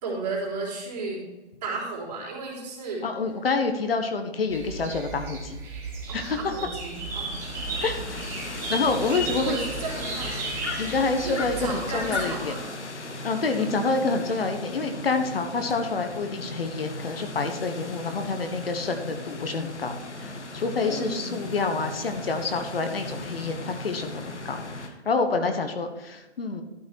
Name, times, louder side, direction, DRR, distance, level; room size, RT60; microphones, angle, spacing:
voice 1, 0.0-1.2 1.6-3.0 6.1-7.3 7.8-7.9 9.0-10.4 11.2-12.7 13.6-13.8 20.8-21.3, right 3 dB, 35° right, -3 dB, 3.6 m, -34 dB
voice 2, 3.0-5.6 6.1-6.4 7.8-9.6 10.8-12.6 13.2-26.6, left 4 dB, 55° left, 6 dB, 1.3 m, -28 dB
sound 1, 4.5-12.4, right 3 dB, 5° right, 1.0 m, -35 dB
sound 2, 6.8-24.9, left 2 dB, 85° left, 1.7 m, -37 dB
12.5 x 5.5 x 4.6 m, 1.1 s
hypercardioid pair, 155°, 34 cm